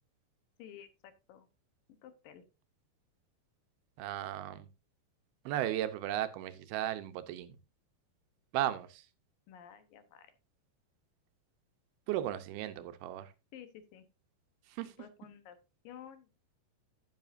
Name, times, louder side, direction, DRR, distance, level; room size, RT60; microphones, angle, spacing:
voice 1, 0.6-1.5 1.9-2.4 9.5-10.3 13.5-14.1 15.0-15.6 15.8-16.3, left 9 dB, 70° left, 10 dB, 2.5 m, -52 dB
voice 2, 4.0-4.7 5.5-7.6 8.5-9.0 12.1-13.3 14.7-14.9, right 12 dB, 85° right, 11 dB, 2.8 m, -35 dB
11.0 x 10.0 x 2.6 m, 0.27 s
omnidirectional pair, 4.4 m